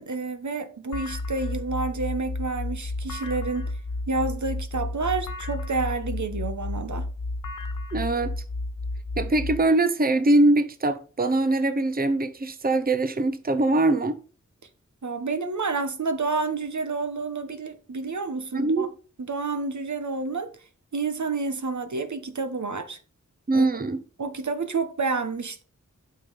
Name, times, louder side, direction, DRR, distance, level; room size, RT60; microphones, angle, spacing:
voice 1, 0.0-3.7 4.1-7.1 15.0-18.9 19.2-20.5 20.9-23.0 23.5-23.7 24.2-25.6, right 4 dB, 65° right, 1.3 m, -29 dB
sound 1, 0.9-9.6, left 2 dB, 85° left, 1.3 m, -32 dB
voice 2, 7.9-8.4 9.2-14.2 18.5-18.9 23.5-24.0, right 2 dB, 30° right, 0.8 m, -22 dB
8.7 x 5.5 x 5.6 m
cardioid pair, 50°, 31 cm